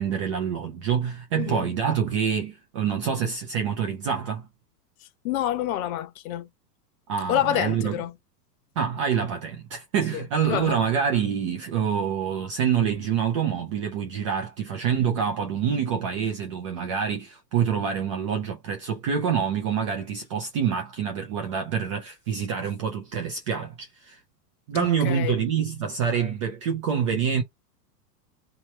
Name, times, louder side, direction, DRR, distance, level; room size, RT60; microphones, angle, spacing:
voice 1, 0.0-4.5 7.1-8.0 8.8-24.2 24.7-27.4, right 7 dB, 25° right, 0.3 m, -26 dB
voice 2, 1.4-1.7 5.0-6.5 7.3-8.1 10.1-10.8 24.7-25.4, left 12 dB, 60° left, 1.0 m, -28 dB
3.0 x 3.0 x 4.2 m
supercardioid pair, 140°, 49 cm